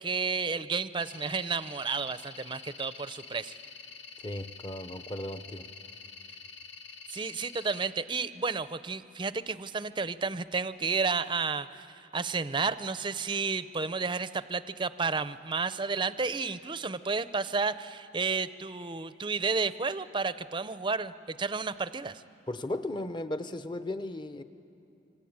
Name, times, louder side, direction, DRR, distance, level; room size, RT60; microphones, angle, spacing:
voice 1, 0.0-3.6 7.1-22.2, right 4 dB, 25° right, 14 dB, 0.6 m, -32 dB
sound 1, 1.0-7.9, left 5 dB, 85° left, 1.6 m, -47 dB
voice 2, 4.2-5.7 22.5-24.4, left 1 dB, 25° left, 10 dB, 0.9 m, -36 dB
26.0 x 25.5 x 8.8 m, 2.6 s
head